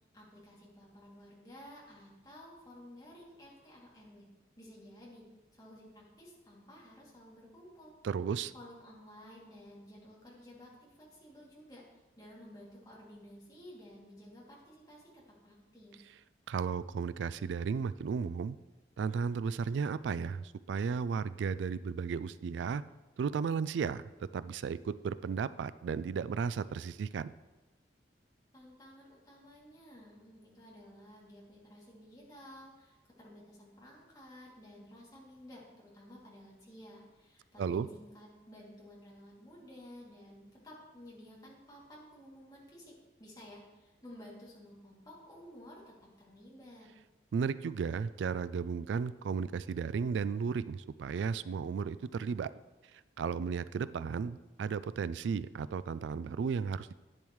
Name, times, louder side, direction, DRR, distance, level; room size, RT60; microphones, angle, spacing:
voice 1, 0.1-4.3 4.6-5.2 5.5-7.9 8.5-16.0 28.5-46.9, left 1 dB, 20° left, -5 dB, 2.5 m, -53 dB
voice 2, 8.0-8.5 16.5-18.6 19.0-22.8 23.2-27.3 37.6-37.9 47.3-52.5 53.2-56.9, right 6 dB, 90° right, 16 dB, 0.3 m, -34 dB
10.5 x 10.0 x 3.1 m, 1.1 s
head